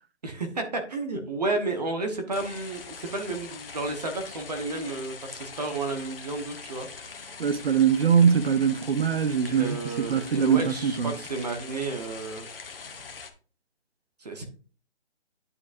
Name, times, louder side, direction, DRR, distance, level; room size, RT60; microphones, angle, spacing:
voice 1, 0.2-6.9 9.5-12.5 14.2-14.5, right 2 dB, 35° right, 1.1 m, -32 dB
sound 1, 2.3-13.3, left 5 dB, 55° left, 1.3 m, -43 dB
voice 2, 7.4-11.1, right 7 dB, 60° right, 0.7 m, -22 dB
9.3 x 5.9 x 2.6 m
figure-of-eight pair, 165°, 35 cm